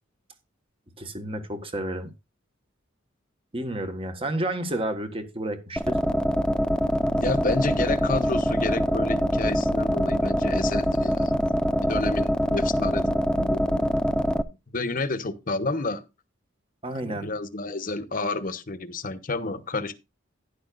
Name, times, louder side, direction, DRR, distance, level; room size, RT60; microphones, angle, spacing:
voice 1, 1.0-2.1 3.5-6.0 16.8-17.3, right 1 dB, 30° right, 1.4 m, -31 dB
sound 1, 5.8-14.4, equal, 5° left, 0.4 m, -24 dB
voice 2, 7.1-11.3 11.9-13.9 14.7-16.0 16.9-19.9, left 3 dB, 45° left, 1.0 m, -30 dB
11.5 x 10.5 x 2.4 m
head